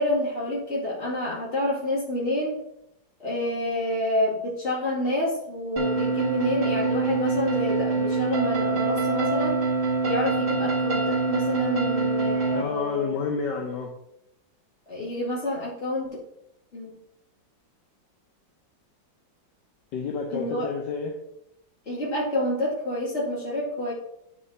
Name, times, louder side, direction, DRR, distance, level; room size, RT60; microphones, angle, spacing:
voice 1, 0.0-2.6 3.2-9.6 10.0-13.1 14.9-16.2 16.7-17.0 20.3-20.7 21.9-23.9, left 1 dB, 35° left, -6 dB, 2.6 m, -28 dB
sound 1, 5.8-12.6, right 3 dB, 35° right, 0.7 m, -25 dB
voice 2, 12.5-13.9 19.9-21.2, left 5 dB, 70° left, 2 dB, 1.4 m, -29 dB
9.3 x 5.3 x 2.7 m, 0.80 s
omnidirectional pair, 2.0 m